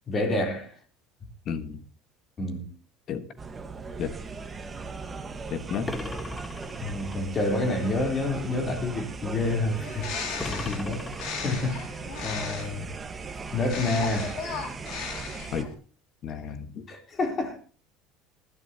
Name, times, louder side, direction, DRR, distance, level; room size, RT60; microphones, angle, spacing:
voice 1, 0.1-0.8 2.4-2.7 6.8-10.1 10.5-11.0 11.4-12.9 13.5-14.4 16.9-17.6, left 2 dB, 35° left, 3.6 m, -28 dB
voice 2, 1.4-1.8 3.1-3.3 4.0-4.2 5.5-5.9 10.3-10.8 15.5-15.7 16.2-16.9, left 7 dB, 50° left, 1.6 m, -33 dB
sound 1, 3.4-15.6, right 4 dB, 25° right, 1.5 m, -38 dB
sound 2, 5.8-7.3 10.4-11.9, left 2 dB, 15° left, 1.5 m, -38 dB
Bird, 9.7-12.9 13.6-15.7, left 5 dB, 65° left, 3.2 m, -36 dB
20.0 x 12.0 x 2.9 m
supercardioid pair, 110°, 0 cm